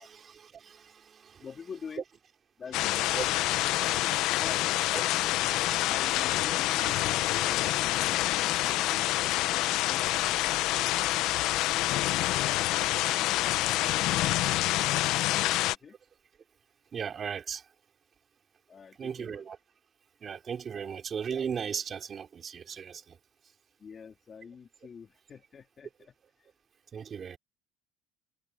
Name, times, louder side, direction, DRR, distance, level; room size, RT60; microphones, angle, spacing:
voice 1, 0.0-1.5 3.1-4.4 4.9-5.9 6.8-6.9 8.7-8.8 16.9-17.7 19.0-19.6 20.2-23.2 26.9-27.4, right 7 dB, 25° right, 3.9 m, -38 dB
voice 2, 1.4-2.0 2.6-3.4 4.3-4.6 5.8-8.1 8.5-11.2 11.7-11.9 12.3-15.9 18.7-19.4 20.7-21.0 23.8-26.1, left 6 dB, 20° left, 2.9 m, -47 dB
sound 1, 2.7-15.8, left 16 dB, 55° left, 0.6 m, -27 dB
cardioid pair, 175°, 0 cm